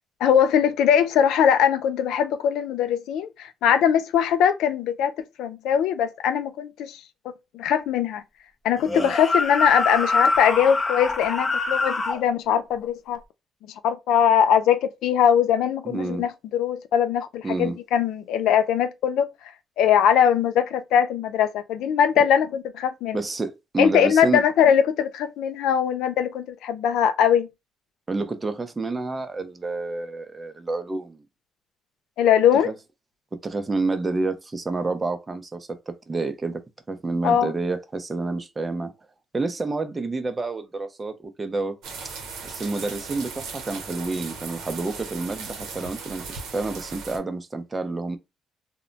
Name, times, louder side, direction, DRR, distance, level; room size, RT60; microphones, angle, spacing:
voice 1, 0.2-5.1 5.4-7.0 7.5-8.2 8.6-13.2 13.8-19.3 19.8-23.2 23.8-27.5 32.2-32.7 37.2-37.5, left 8 dB, 90° left, 0.3 m, -21 dB
sound 1, 8.8-12.2, left 3 dB, 25° left, 0.5 m, -24 dB
voice 2, 15.8-16.3 17.4-17.8 23.1-24.4 28.1-31.2 32.6-32.7 33.3-36.6 36.9-38.9 39.3-41.8 42.4-48.2, right 3 dB, 25° right, 0.5 m, -29 dB
sound 2, 41.8-47.2, right 5 dB, 90° right, 0.7 m, -37 dB
2.1 x 2.0 x 3.8 m
cardioid pair, 90°, 0 cm